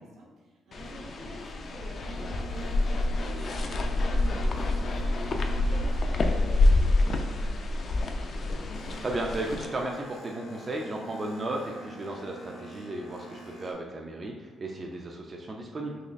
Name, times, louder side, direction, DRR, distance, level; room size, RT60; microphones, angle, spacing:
voice 1, 0.0-8.1, right 2 dB, 85° right, -5 dB, 1.3 m, -47 dB
sound 1, 0.7-9.6, left 2 dB, 50° left, 0.4 m, -27 dB
Boat Water vehicle, 2.0-7.0 7.4-13.7, right 2 dB, 75° left, 1.1 m, -44 dB
voice 2, 9.0-16.0, right 2 dB, 35° right, 0 dB, 0.4 m, -35 dB
3.9 x 3.0 x 2.5 m, 1.3 s
cardioid pair, 90°, 0 cm